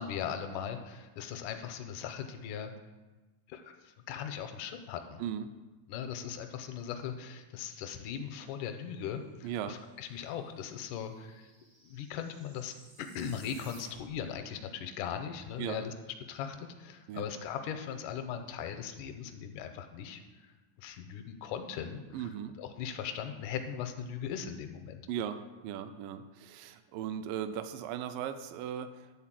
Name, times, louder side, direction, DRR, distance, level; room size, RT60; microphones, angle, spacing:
voice 1, 0.0-2.7 3.5-5.2 5.9-11.5 11.8-15.9 16.3-22.3 22.6-25.0, left 8 dB, 80° left, 7 dB, 2.0 m, -39 dB
voice 2, 5.2-5.5 9.4-9.8 15.6-15.8 17.1-17.3 22.1-22.5 25.1-29.2, right 9 dB, 80° right, 10 dB, 2.2 m, -37 dB
sound 1, 9.8-9.9 10.1-14.4, right 2 dB, 60° right, 0.9 m, -57 dB
10.5 x 4.1 x 7.4 m, 1.2 s
omnidirectional pair, 4.1 m